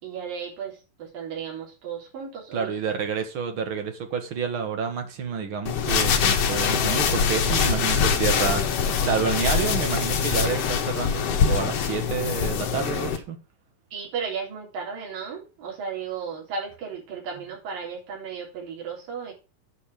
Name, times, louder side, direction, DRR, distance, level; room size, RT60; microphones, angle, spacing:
voice 1, 0.0-2.7 13.9-19.3, right 6 dB, 80° right, -1 dB, 5.2 m, -34 dB
voice 2, 2.5-13.4, right 6 dB, 50° right, 7 dB, 1.8 m, -29 dB
sound 1, 5.7-13.2, left 6 dB, 55° left, 2.1 m, -23 dB
9.2 x 5.6 x 6.9 m, 0.33 s
omnidirectional pair, 3.9 m